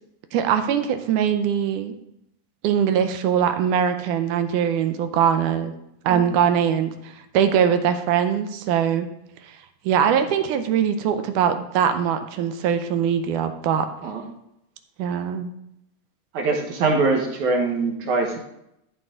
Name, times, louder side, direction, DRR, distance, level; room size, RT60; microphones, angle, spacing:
voice 1, 0.3-1.9 2.6-5.7 6.1-6.9 7.3-9.1 9.9-13.9 15.0-15.5, right 8 dB, 85° right, 8 dB, 2.3 m, -21 dB
voice 2, 16.3-18.4, right 3 dB, 70° right, 2 dB, 2.5 m, -23 dB
14.0 x 5.3 x 3.7 m, 0.79 s
omnidirectional pair, 3.6 m